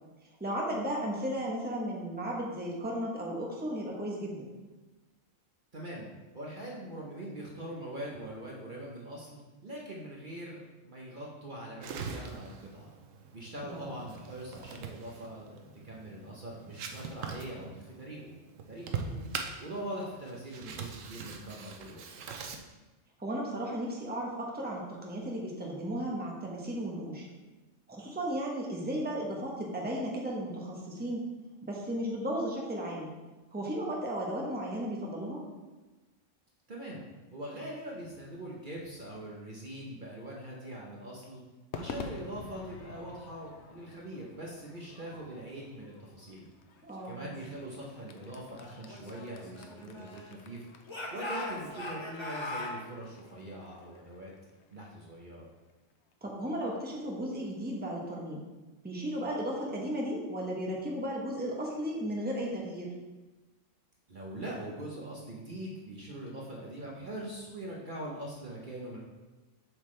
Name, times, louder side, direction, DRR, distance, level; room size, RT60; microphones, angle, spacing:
voice 1, 0.4-4.5 13.6-13.9 19.0-19.2 23.2-27.3 27.9-31.2 31.6-33.1 33.5-35.4 46.8-47.2 56.2-58.4 58.8-62.9, equal, 10° right, -2 dB, 1.0 m, -35 dB
voice 2, 5.7-6.1 6.3-12.9 13.3-18.3 18.7-19.0 19.6-22.1 36.7-37.0 37.3-41.4 41.7-46.4 47.0-50.6 51.1-54.3 54.7-55.5 64.1-69.0, right 1 dB, 45° right, -3 dB, 1.1 m, -42 dB
sound 1, 11.8-22.6, right 5 dB, 85° right, 1.1 m, -42 dB
Crowd / Fireworks, 41.7-56.1, left 4 dB, 65° left, 0.9 m, -49 dB
Speech / Shout, 48.9-50.4 50.9-52.8, left 1 dB, 25° left, 0.9 m, -39 dB
7.5 x 5.8 x 3.3 m, 1.2 s
omnidirectional pair, 1.3 m